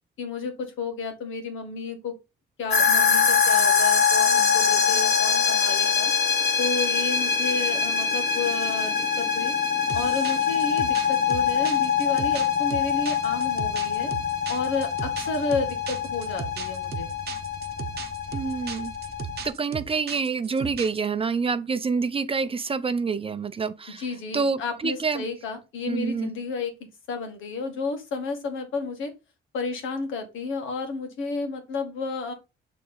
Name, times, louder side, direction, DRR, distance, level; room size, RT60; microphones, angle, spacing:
voice 1, 0.2-2.2 2.6-6.1 6.6-9.5 9.9-14.1 14.5-17.2 24.0-29.1 29.5-32.3, left 4 dB, 80° left, 1.9 m, -32 dB
sound 1, 2.7-19.5, left 6 dB, 55° left, 1.4 m, -24 dB
sound 2, 9.9-21.1, right 8 dB, 55° right, 0.9 m, -37 dB
voice 2, 18.3-18.9 19.4-24.0 24.3-25.2 25.9-26.3, right 5 dB, 30° right, 0.6 m, -27 dB
6.8 x 3.7 x 3.8 m
cardioid pair, 90°, 20 cm